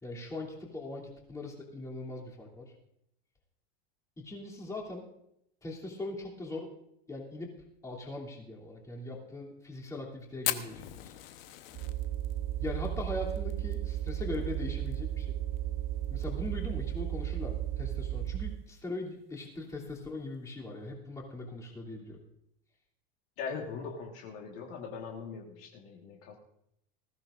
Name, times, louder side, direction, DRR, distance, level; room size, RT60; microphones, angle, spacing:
voice 1, 0.0-2.7 4.2-5.0 5.6-6.7 7.1-7.5 7.8-11.1 12.6-15.4 16.1-22.2, left 2 dB, 10° left, -4 dB, 3.0 m, -40 dB
Fire, 10.4-15.0 15.2-15.3 15.6-15.7 16.0-16.5 17.0-17.1 18.1-18.3, left 13 dB, 70° left, 1.1 m, -38 dB
sound 1, 11.7-18.6, right 12 dB, 30° right, 0.5 m, -34 dB
voice 2, 23.4-26.4, left 5 dB, 45° left, 1 dB, 1.7 m, -41 dB
19.5 x 15.0 x 2.6 m, 0.77 s
supercardioid pair, 145°, 31 cm